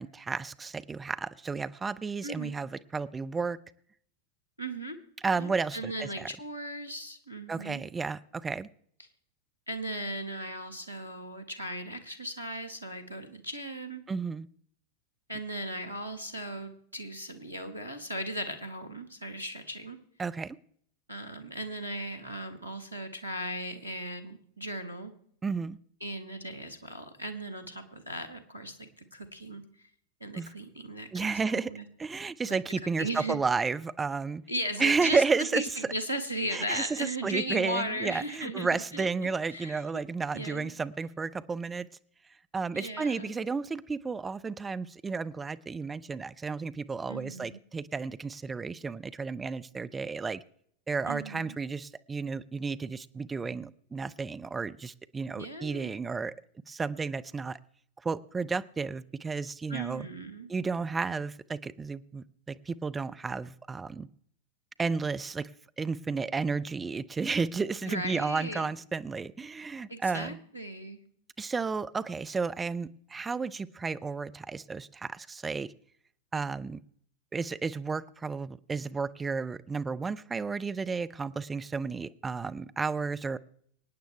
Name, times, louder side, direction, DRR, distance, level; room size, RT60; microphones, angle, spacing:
voice 1, 0.0-3.6 5.2-6.3 7.5-8.7 14.1-14.5 20.2-20.6 25.4-25.8 30.3-30.5 31.1-31.7 32.0-34.4 34.8-35.6 36.5-41.9 42.5-50.4 50.9-56.3 56.7-57.6 58.0-60.1 60.5-64.1 64.8-65.5 65.8-70.4 71.4-75.7 76.3-76.8 77.3-83.4, right 4 dB, 15° right, 13 dB, 0.5 m, -32 dB
voice 2, 2.2-2.5 4.6-5.0 5.4-7.8 9.7-14.0 15.3-20.0 21.1-25.1 26.0-29.6 30.2-31.8 32.5-32.6 33.0-33.4 34.5-39.1 39.5-40.0 40.3-40.7 42.7-43.4 47.1-47.6 51.0-51.6 55.3-55.9 59.7-60.5 67.8-68.7 69.9-71.0, right 1 dB, 90° right, 5 dB, 1.5 m, -37 dB
25.0 x 9.2 x 3.4 m, 0.64 s
figure-of-eight pair, 90°, 0 cm